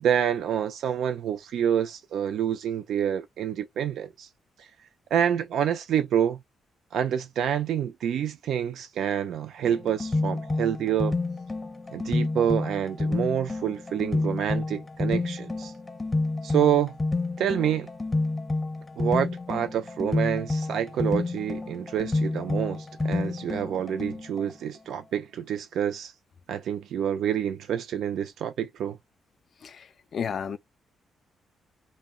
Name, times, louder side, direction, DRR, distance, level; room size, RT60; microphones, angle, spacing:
voice 1, 0.0-4.3 4.6-4.7 5.1-6.4 6.9-11.1 11.9-15.7 16.4-16.9 17.4-17.9 19.0-26.1 26.5-29.0, right 9 dB, 75° right, 0.3 m, -27 dB
sound 1, 9.6-24.5, left 2 dB, 20° left, 0.7 m, -29 dB
voice 2, 30.1-30.6, left 7 dB, 50° left, 0.3 m, -31 dB
2.2 x 2.1 x 3.6 m
cardioid pair, 110°, 0 cm